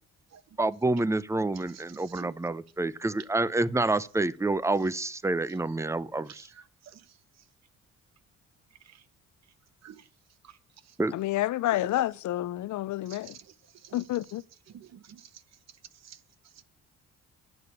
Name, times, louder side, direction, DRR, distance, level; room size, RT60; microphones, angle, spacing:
voice 1, 0.6-6.5 11.0-11.1, right 2 dB, 10° right, 0.6 m, -28 dB
voice 2, 1.5-2.3 5.5-5.6 6.3-7.2 8.8-9.0 9.8-10.1 10.4-10.6 10.8-11.0 11.7-12.0 13.1-14.0 14.7-15.4 15.9-16.6, right 9 dB, 60° right, 1.0 m, -50 dB
voice 3, 11.1-13.3 13.9-14.4, left 15 dB, 70° left, 0.6 m, -29 dB
11.0 x 7.2 x 8.4 m
cardioid pair, 90°, 30 cm